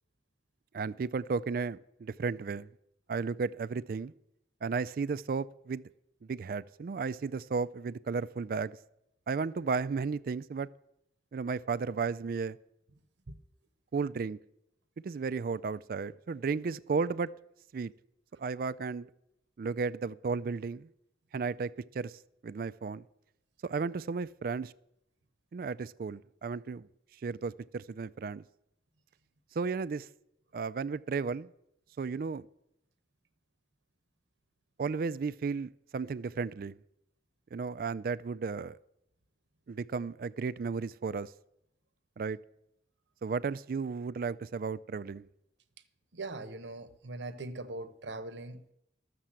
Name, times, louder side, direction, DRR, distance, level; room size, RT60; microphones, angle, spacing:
voice 1, 0.7-2.7 3.1-4.1 4.6-5.8 6.2-8.8 9.3-10.7 11.3-12.6 13.9-14.4 15.0-17.3 17.7-17.9 18.4-19.1 19.6-20.9 21.3-23.0 23.6-24.7 25.5-26.9 27.2-28.4 29.5-30.1 30.5-31.5 32.0-32.5 34.8-36.8 37.5-38.8 39.7-41.3 42.2-42.4 43.2-45.3, right 5 dB, 50° right, 0.3 m, -34 dB
voice 2, 46.1-48.7, right 2 dB, 85° right, 0.8 m, -41 dB
13.0 x 6.7 x 7.5 m
head